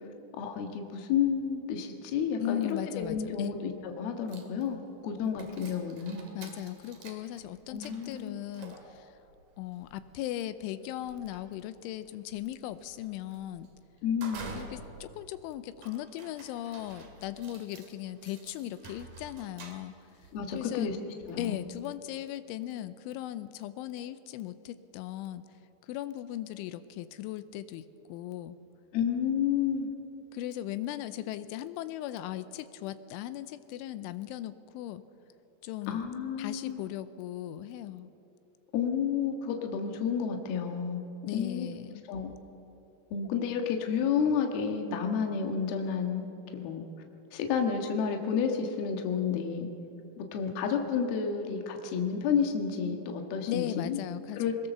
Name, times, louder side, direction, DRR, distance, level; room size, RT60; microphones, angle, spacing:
voice 1, 0.3-6.3 7.7-8.4 14.0-14.5 20.3-21.0 21.3-21.6 28.9-29.9 35.9-36.8 38.7-41.0 41.3-41.7 42.1-42.3 43.1-46.3 46.5-46.8 47.3-49.7 50.2-54.0 54.4-54.7, left 7 dB, 65° left, 4 dB, 3.2 m, -30 dB
voice 2, 2.4-3.5 6.3-9.1 9.6-13.7 14.5-19.9 20.5-20.9 21.4-25.5 25.8-28.6 30.3-35.0 35.6-36.1 36.4-38.1 41.3-42.1 53.5-54.4, left 13 dB, 85° left, 13 dB, 3.2 m, -38 dB
sound 1, 3.8-3.9 4.3-21.9, right 4 dB, 50° right, 3.0 m, -50 dB
22.0 x 20.5 x 7.0 m, 2.8 s
omnidirectional pair, 5.4 m